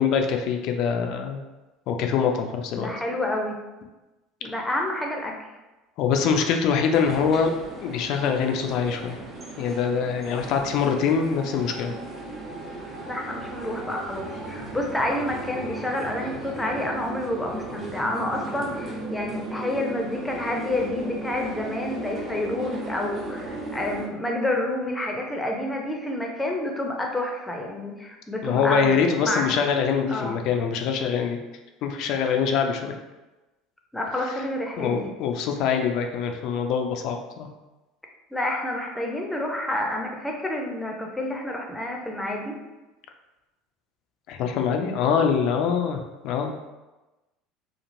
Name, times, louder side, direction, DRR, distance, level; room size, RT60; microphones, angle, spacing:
voice 1, 0.0-1.4 1.9-2.9 6.0-7.5 7.8-9.2 9.6-11.9 28.4-31.4 31.8-32.9 34.8-37.5 44.3-46.5, left 6 dB, 55° left, 4 dB, 0.3 m, -24 dB
voice 2, 2.8-3.6 4.4-5.3 13.1-28.9 29.2-29.6 30.1-30.4 33.9-34.9 38.3-42.5, left 1 dB, 10° left, 1 dB, 0.6 m, -29 dB
sound 1, 6.9-24.1, right 2 dB, 35° right, 0.8 m, -36 dB
3.0 x 2.4 x 2.6 m, 1.1 s
figure-of-eight pair, 70°, 0 cm